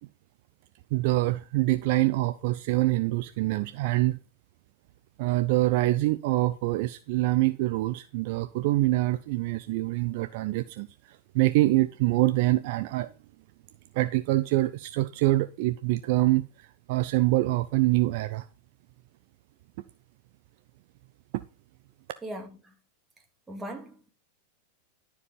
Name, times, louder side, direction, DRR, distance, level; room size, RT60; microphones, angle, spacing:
voice 1, 0.9-4.2 5.2-10.9 11.3-13.1 13.9-18.4, right 18 dB, 50° right, 0.5 m, -25 dB
voice 2, 22.2-22.7 23.5-24.1, right 1 dB, 10° right, 2.3 m, -39 dB
12.5 x 4.8 x 5.3 m
figure-of-eight pair, 90°, 0 cm